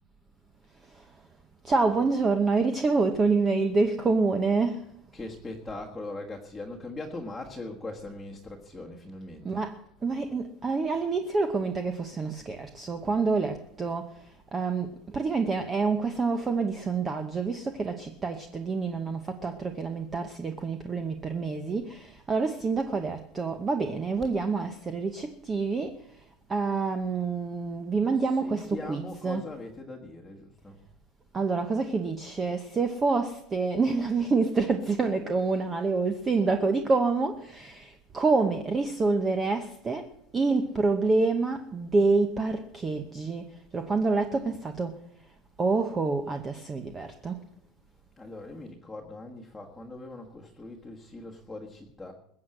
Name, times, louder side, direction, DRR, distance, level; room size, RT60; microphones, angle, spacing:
voice 1, 0.8-1.1 1.6-4.9 9.4-29.5 31.3-45.0 45.6-47.4, right 4 dB, 15° right, 7 dB, 0.8 m, -27 dB
voice 2, 5.1-9.6 28.1-30.8 48.2-52.1, left 2 dB, 5° left, -2 dB, 1.5 m, -40 dB
21.0 x 8.0 x 7.8 m, 0.73 s
supercardioid pair, 175°, 0 cm